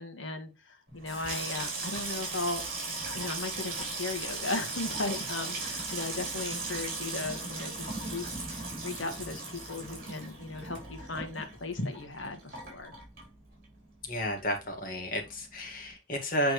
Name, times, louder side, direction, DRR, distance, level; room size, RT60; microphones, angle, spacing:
voice 1, 0.0-2.6 3.1-12.9, left 3 dB, 70° left, 5 dB, 1.6 m, -37 dB
Water tap faucet / Sink (filling or washing), 0.9-13.8 14.0-14.7 15.0-15.3, right 3 dB, 45° right, 3.8 m, -37 dB
voice 2, 14.1-16.5, equal, 45° left, 2 dB, 1.9 m, -32 dB
8.4 x 4.3 x 3.1 m, 0.26 s
head